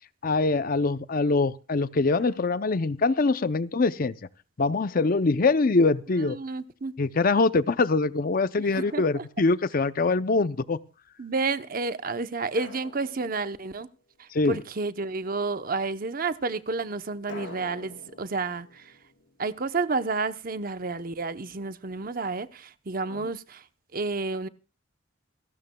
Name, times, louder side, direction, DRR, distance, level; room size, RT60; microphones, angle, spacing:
voice 1, 0.2-4.1 4.6-6.4 7.0-10.8 14.3-14.6, left 3 dB, 45° left, 0.6 m, -23 dB
Drum, 2.2-2.9 4.9-6.0 8.7-9.9 12.5-14.2 17.3-20.3, left 2 dB, 70° left, 4.9 m, -48 dB
voice 2, 6.2-6.9 8.7-9.2 11.2-13.9 14.2-18.9 19.4-23.6 23.9-24.5, right 3 dB, 45° right, 0.8 m, -30 dB
28.5 x 12.5 x 2.3 m
head